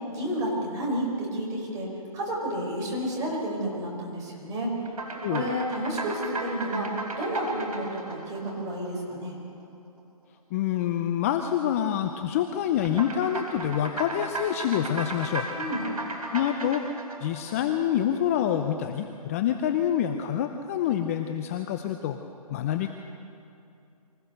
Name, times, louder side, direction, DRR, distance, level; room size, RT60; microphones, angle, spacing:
voice 1, 0.1-4.7 5.3-6.9 7.2-9.4 15.5-15.9, equal, 15° right, -2 dB, 4.7 m, -31 dB
sound 1, 4.8-9.5 12.8-18.3, right 2 dB, 70° right, 4.6 m, -36 dB
voice 2, 10.5-15.5 16.3-16.8 17.2-22.2 22.5-22.9, left 10 dB, 25° left, 7 dB, 0.6 m, -26 dB
24.5 x 16.0 x 6.7 m, 2.6 s
hypercardioid pair, 150°, 20 cm